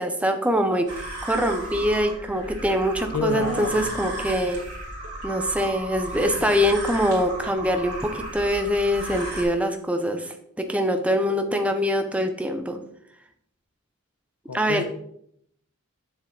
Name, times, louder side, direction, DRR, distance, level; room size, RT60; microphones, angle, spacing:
voice 1, 0.0-4.6 5.2-12.8 14.5-14.8, equal, 5° right, 6 dB, 0.6 m, -24 dB
sound 1, 0.9-9.4, right 1 dB, 90° right, 3.2 m, -34 dB
voice 2, 3.1-3.9 14.5-14.8, left 4 dB, 85° left, 7 dB, 0.9 m, -28 dB
7.0 x 6.9 x 3.9 m, 0.71 s
head